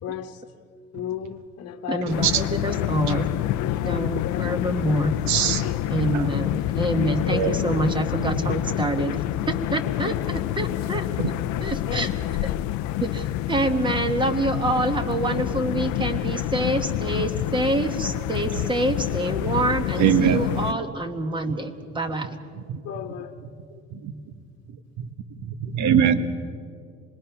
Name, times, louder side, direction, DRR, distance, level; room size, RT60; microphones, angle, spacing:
voice 1, 0.0-0.4 0.9-2.2 3.6-4.7 5.6-5.8 10.1-10.4 10.7-10.8 11.9-12.7 22.8-23.3, left 10 dB, 55° left, 5 dB, 1.2 m, -35 dB
voice 2, 1.9-3.3 3.8-5.2 5.9-11.1 11.6-12.1 12.4-12.5 13.0-22.4, right 1 dB, 15° right, 7 dB, 1.2 m, -26 dB
sound 1, 2.1-20.7, left 14 dB, 70° left, 0.6 m, -27 dB
voice 3, 5.3-5.7 6.1-6.3 7.3-7.6 11.2-11.3 18.5-18.6 20.0-20.8 22.7-22.8 23.9-24.1 25.0-25.1 25.4-26.2, right 8 dB, 65° right, 9 dB, 1.4 m, -22 dB
26.0 x 21.0 x 5.9 m, 2.3 s
cardioid pair, 155°, 30 cm